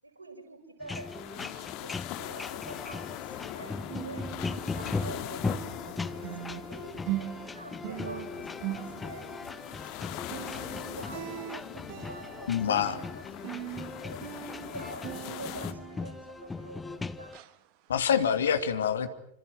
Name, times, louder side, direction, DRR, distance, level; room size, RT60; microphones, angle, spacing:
voice 1, 0.0-10.4 10.7-14.4 14.7-17.4, right 2 dB, 75° right, 3 dB, 6.9 m, -47 dB
sound 1, 0.8-17.4, left 3 dB, 10° left, 1.0 m, -39 dB
sound 2, 0.9-15.7, left 13 dB, 40° left, 2.4 m, -42 dB
sound 3, 1.6-3.6 3.8-17.0 17.3-17.6 18.0-18.1, right 15 dB, 45° right, 1.7 m, -42 dB
voice 2, 12.5-13.0 17.9-19.1, left 8 dB, 65° left, 9 dB, 2.6 m, -26 dB
27.5 x 25.5 x 7.8 m, 0.73 s
figure-of-eight pair, 90°, 0 cm